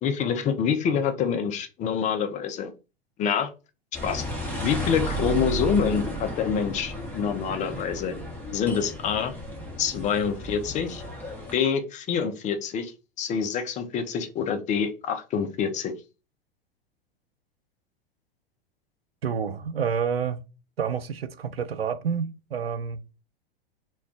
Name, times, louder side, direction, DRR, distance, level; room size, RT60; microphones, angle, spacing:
voice 1, 0.0-2.7 3.2-3.5 4.0-4.2 4.6-8.1 8.5-9.3 9.8-11.0 11.5-12.9 13.2-15.9, left 7 dB, 25° left, 0.5 m, -26 dB
sound 1, 3.9-11.5, right 1 dB, 5° left, 0.9 m, -33 dB
voice 2, 19.2-20.4 20.8-23.2, right 7 dB, 90° right, 0.5 m, -29 dB
2.3 x 2.2 x 3.7 m
figure-of-eight pair, 95°, 29 cm